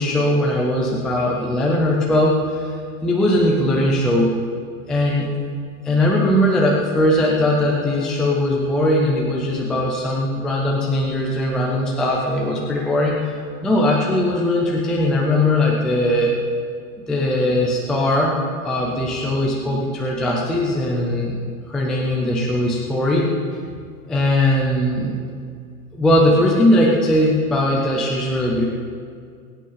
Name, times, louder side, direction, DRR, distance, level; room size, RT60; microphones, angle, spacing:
voice 1, 0.0-2.7 3.0-4.3 4.9-5.3 5.8-13.4 13.6-16.4 17.1-18.4 18.6-21.4 21.7-23.3 24.1-25.2 25.9-28.7, left 1 dB, ahead, -3 dB, 0.4 m, -19 dB
22.0 x 9.1 x 5.6 m, 2.2 s
supercardioid pair, 160°, 43 cm